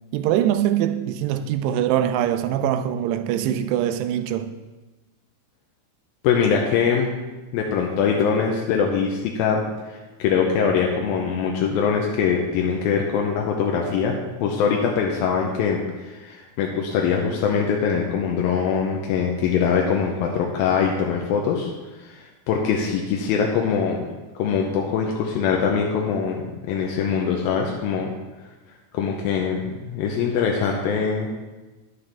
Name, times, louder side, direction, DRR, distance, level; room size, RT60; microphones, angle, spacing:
voice 1, 0.1-4.5, right 11 dB, 85° right, 2.6 m, -23 dB
voice 2, 6.2-7.1 7.5-24.0 24.4-28.1 28.9-31.3, left 6 dB, 75° left, 2.3 m, -23 dB
10.5 x 9.7 x 3.4 m
omnidirectional pair, 4.9 m